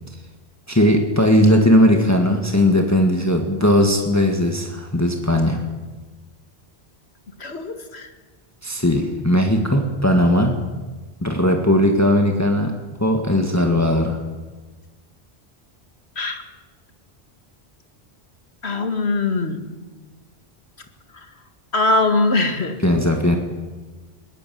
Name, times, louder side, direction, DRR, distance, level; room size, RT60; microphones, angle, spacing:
voice 1, 0.7-5.6 8.6-10.6 11.2-14.2 22.8-23.4, left 1 dB, 15° left, 3 dB, 1.8 m, -18 dB
voice 2, 7.4-8.1 16.2-16.4 18.6-19.6 21.7-22.8, left 2 dB, 80° left, 6 dB, 2.3 m, -21 dB
21.0 x 17.5 x 9.3 m, 1.3 s
omnidirectional pair, 1.1 m